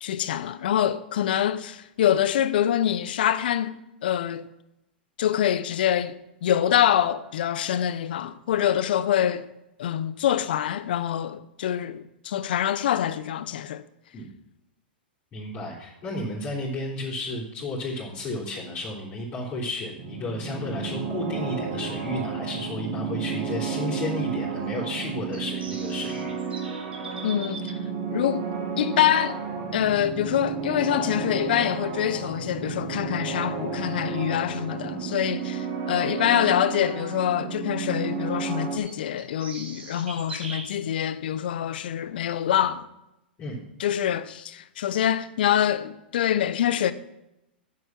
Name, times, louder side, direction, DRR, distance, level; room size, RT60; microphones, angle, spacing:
voice 1, 0.0-3.7 4.0-4.5 5.2-9.5 9.8-13.8 27.2-27.7 28.1-28.5 28.8-29.4 29.7-42.9 43.8-46.9, left 10 dB, 65° left, 0.7 m, -25 dB
voice 2, 15.3-26.7 43.4-43.6, left 2 dB, 30° left, 3.5 m, -33 dB
sound 1, 20.0-38.8, right 5 dB, 40° right, 1.9 m, -32 dB
sound 2, 22.9-40.7, right 3 dB, 75° right, 1.9 m, -47 dB
9.8 x 7.6 x 5.9 m
hypercardioid pair, 105°, 6 cm